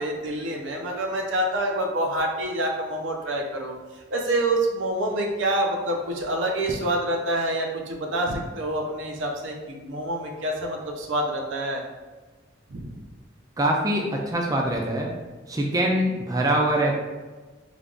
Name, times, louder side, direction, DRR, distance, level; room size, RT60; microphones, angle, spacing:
voice 1, 0.0-3.7 4.1-11.8 12.7-13.0, right 1 dB, 75° right, 2 dB, 0.6 m, -27 dB
voice 2, 13.6-15.1 15.5-16.9, right 1 dB, 20° right, 0 dB, 0.4 m, -23 dB
3.4 x 2.4 x 3.7 m, 1.3 s
head